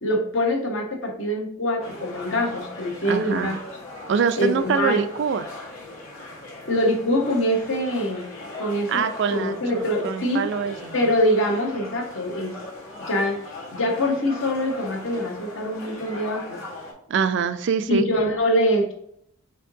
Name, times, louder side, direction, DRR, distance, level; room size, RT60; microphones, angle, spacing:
voice 1, 0.0-3.6 4.4-5.0 6.7-8.3 8.6-9.0 9.3-10.5 10.9-12.5 13.1-13.4 13.7-16.6 17.9-18.9, equal, 60° left, 2 dB, 1.0 m, -24 dB
sound 1, 1.8-16.9, left 2 dB, 75° left, 1.4 m, -39 dB
voice 2, 3.0-3.6 4.1-5.5 8.9-11.1 17.1-18.1, right 6 dB, 55° right, 11 dB, 0.3 m, -24 dB
4.4 x 3.6 x 2.6 m, 0.70 s
head